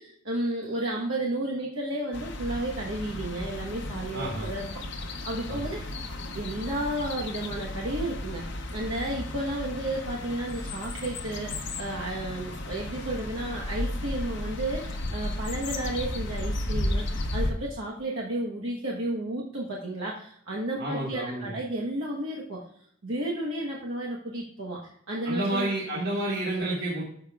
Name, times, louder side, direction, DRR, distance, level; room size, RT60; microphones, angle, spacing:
voice 1, 0.0-4.7 5.2-5.9 6.3-8.4 8.7-22.6 23.0-24.8 25.1-25.7, right 1 dB, 75° right, -3 dB, 1.1 m, -32 dB
sound 1, 2.1-17.5, left 1 dB, 55° left, 0.8 m, -34 dB
voice 2, 4.1-4.5 5.4-5.7 20.8-21.5 25.2-27.0, right 1 dB, 50° right, -5 dB, 1.6 m, -30 dB
13.0 x 5.1 x 2.4 m, 0.65 s
head